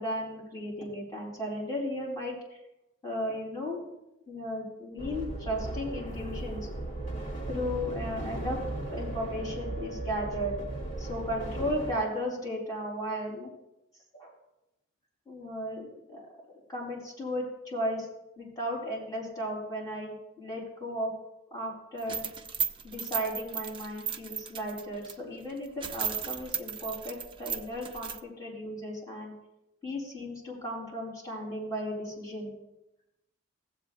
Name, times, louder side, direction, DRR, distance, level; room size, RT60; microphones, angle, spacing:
voice 1, 0.0-2.6 3.0-3.9 4.3-6.7 7.5-8.6 8.9-10.5 11.0-13.5 14.1-14.3 15.3-15.9 16.1-16.2 16.7-18.1 18.4-21.1 21.5-22.2 22.8-29.3 29.8-32.5, equal, 15° left, -5 dB, 3.9 m, -35 dB
sound 1, 5.0-11.9, right 2 dB, 40° left, 1.8 m, -36 dB
sound 2, 22.0-25.1 25.5-25.6 25.8-28.2, right 7 dB, 25° right, 0.4 m, -35 dB
17.0 x 7.9 x 2.6 m, 0.90 s
head